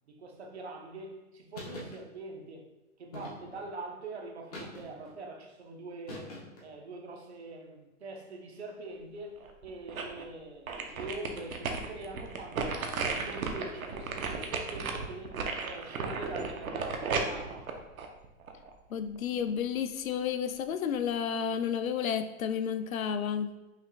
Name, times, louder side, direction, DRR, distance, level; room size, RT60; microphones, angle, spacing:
voice 1, 0.1-2.7 3.0-6.3 6.6-15.3 15.6-17.6, right 2 dB, 50° right, 2 dB, 0.8 m, -43 dB
sound 1, 1.5-2.0 3.1-3.7 4.5-5.1 6.1-6.7, left 1 dB, 30° left, 0.9 m, -44 dB
sound 2, 9.4-10.2 10.7-18.7 19.2-19.3, right 4 dB, 90° right, 0.8 m, -35 dB
voice 2, 18.9-23.5, left 8 dB, 80° left, 10 dB, 0.6 m, -31 dB
5.6 x 3.4 x 2.3 m, 1.0 s
hypercardioid pair, 180°, 41 cm